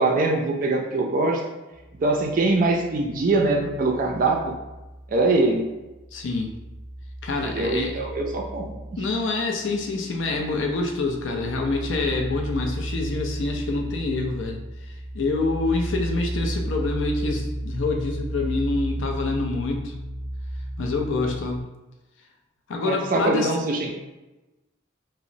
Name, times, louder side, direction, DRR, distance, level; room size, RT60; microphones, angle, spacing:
voice 1, 0.0-1.4 2.0-4.5 5.1-5.6 7.4-8.7 22.8-23.9, right 2 dB, 40° right, 1 dB, 0.3 m, -23 dB
sound 1, 1.7-5.5 5.8-21.6, right 1 dB, 10° right, 0.7 m, -34 dB
voice 2, 6.1-6.5 7.2-8.0 9.0-19.9 20.8-21.6 22.7-23.5, left 3 dB, 70° left, 2 dB, 0.4 m, -26 dB
2.9 x 2.0 x 2.6 m, 1.1 s
head